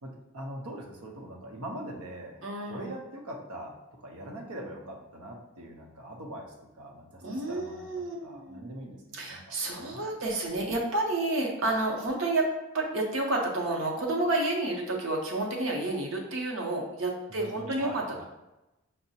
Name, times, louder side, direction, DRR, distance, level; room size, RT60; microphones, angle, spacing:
voice 1, 0.0-2.4 2.7-10.1 17.3-18.2, right 1 dB, 90° right, 1 dB, 0.7 m, -42 dB
voice 2, 2.4-2.9 7.2-8.8 9.1-12.5 12.7-18.2, right 2 dB, 60° right, 0 dB, 0.7 m, -30 dB
5.5 x 2.0 x 2.7 m, 0.96 s
head